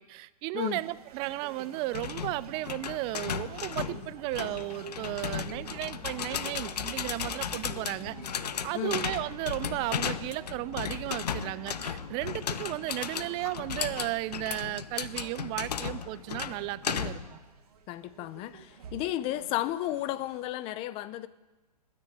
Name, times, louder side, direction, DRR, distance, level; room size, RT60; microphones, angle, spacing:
voice 1, 0.0-8.2 8.6-17.2, right 18 dB, 25° right, 0.4 m, -34 dB
sound 1, 0.6-20.5, right 6 dB, 65° right, 2.1 m, -51 dB
sound 2, 1.9-17.4, left 8 dB, 80° left, 0.8 m, -35 dB
sound 3, 4.6-16.1, equal, 55° left, 5.0 m, -55 dB
voice 2, 8.7-9.0 17.9-21.3, left 14 dB, 30° left, 0.6 m, -33 dB
12.5 x 10.0 x 9.3 m
hypercardioid pair, 130°, 20 cm